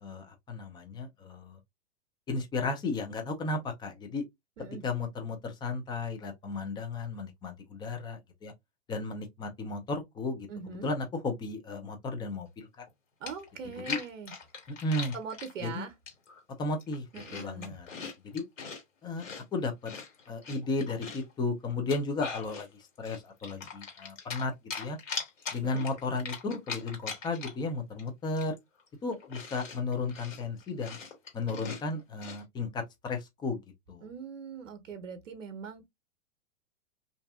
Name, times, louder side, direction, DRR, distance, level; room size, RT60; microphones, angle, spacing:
voice 1, 0.0-1.6 2.3-4.2 4.6-8.5 8.9-10.5 10.8-12.9 13.6-14.0 14.8-15.1 15.6-15.8 16.6-17.9 18.2-18.4 19.0-19.9 20.3-25.0 25.5-28.6 29.0-31.0 31.3-33.6 33.9-34.1, left 3 dB, 10° left, 0.4 m, -34 dB
voice 2, 10.5-10.9 13.2-14.3 15.1-15.9 17.1-17.8 25.6-25.8 34.0-35.8, right 5 dB, 75° right, 0.8 m, -41 dB
Chewing mastication, 12.9-13.0 13.3-15.5 16.1-16.4 16.8-18.8 19.2-21.3 21.7-22.7 23.0-24.4 24.7-27.7 28.0-28.1 28.4-32.4, left 5 dB, 80° left, 1.7 m, -41 dB
2.6 x 2.4 x 2.3 m
hypercardioid pair, 110°, 39 cm